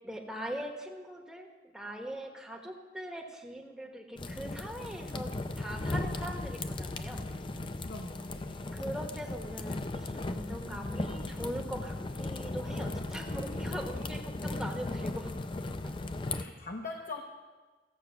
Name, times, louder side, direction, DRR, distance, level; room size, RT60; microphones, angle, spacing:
voice 1, 0.0-1.5 1.7-5.3 5.6-7.2 8.7-15.3 15.7-15.8 16.3-16.5, right 1 dB, 5° right, 1 dB, 1.2 m, -41 dB
sound 1, 4.2-16.4, left 2 dB, 30° left, 0.5 m, -37 dB
voice 2, 7.8-8.6 16.0-17.2, left 3 dB, 50° left, 1 dB, 0.9 m, -42 dB
14.5 x 8.0 x 5.8 m, 1.4 s
head